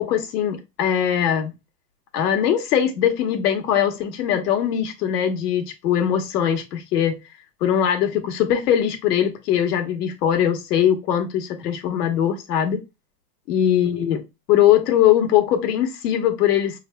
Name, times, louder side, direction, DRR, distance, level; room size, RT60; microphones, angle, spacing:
voice 1, 0.0-1.5 2.1-7.2 7.6-12.8 13.5-14.2 14.5-16.8, left 10 dB, 70° left, 1.3 m, -21 dB
5.3 x 3.1 x 2.2 m
supercardioid pair, 150°, 48 cm